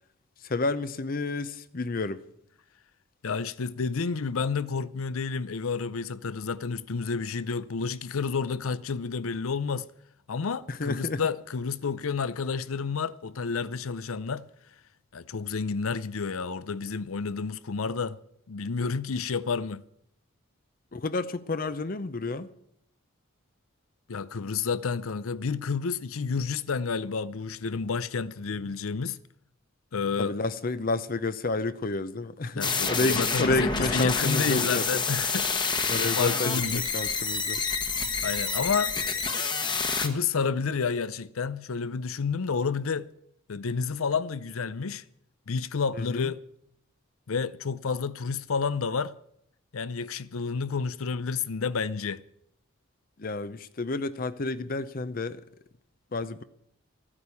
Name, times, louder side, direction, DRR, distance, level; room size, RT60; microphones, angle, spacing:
voice 1, 0.4-2.2 10.7-11.2 20.9-22.5 30.2-35.0 35.9-37.6 45.9-46.3 53.2-55.4 56.1-56.4, left 3 dB, 45° left, 0.6 m, -30 dB
voice 2, 3.2-9.9 10.3-14.4 15.1-18.2 18.5-19.8 24.1-29.2 29.9-30.3 32.6-35.7 36.0-36.9 38.2-38.9 40.0-43.1 43.5-45.0 45.5-46.4 47.3-49.1 49.7-52.2, left 5 dB, 90° left, 0.6 m, -30 dB
sound 1, 32.6-40.1, left 5 dB, 20° left, 1.1 m, -28 dB
14.0 x 9.8 x 8.3 m
head